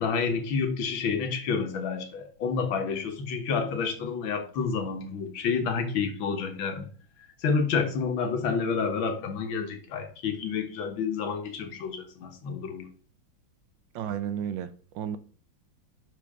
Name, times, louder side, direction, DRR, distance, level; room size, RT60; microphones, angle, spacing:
voice 1, 0.0-6.9 7.4-12.9, left 5 dB, 75° left, 1.9 m, -29 dB
voice 2, 13.9-15.2, right 9 dB, 75° right, 1.3 m, -33 dB
11.0 x 4.5 x 3.5 m
omnidirectional pair, 2.2 m